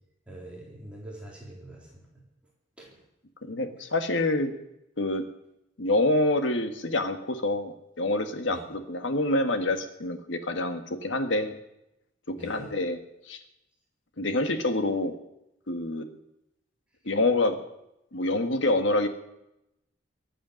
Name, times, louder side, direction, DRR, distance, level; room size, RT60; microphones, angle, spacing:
voice 1, 0.3-2.1 2.8-2.9 8.5-8.6 12.4-12.7, right 1 dB, 5° right, -4 dB, 3.8 m, -43 dB
voice 2, 3.4-4.5 5.0-5.2 5.8-11.5 12.3-13.0 13.3-13.4 14.2-15.1 15.7-16.1 17.0-17.6 18.1-19.1, left 2 dB, 70° left, 8 dB, 1.6 m, -26 dB
23.0 x 8.6 x 6.5 m, 0.85 s
head